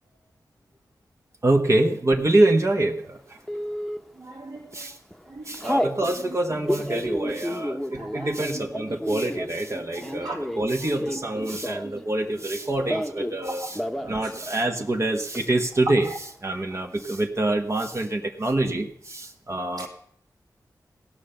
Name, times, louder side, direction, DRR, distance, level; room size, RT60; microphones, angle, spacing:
voice 1, 1.4-3.4 4.7-5.0 5.5-13.8 14.1-19.9, right 2 dB, 40° right, 3 dB, 1.2 m, -25 dB
Telephone, 3.5-4.0 4.6-4.8 5.1-6.0 6.5-12.0 12.3-13.4 13.7-14.1 14.4-14.5 14.8-15.4, equal, ahead, 1.0 m, -30 dB
voice 2, 4.2-4.7 5.4-5.5 7.9-8.1 9.1-9.2 10.2-10.4 14.0-14.3, right 2 dB, 65° right, -3 dB, 2.0 m, -38 dB
16.5 x 5.8 x 6.6 m, 0.68 s
cardioid pair, 60°, 7 cm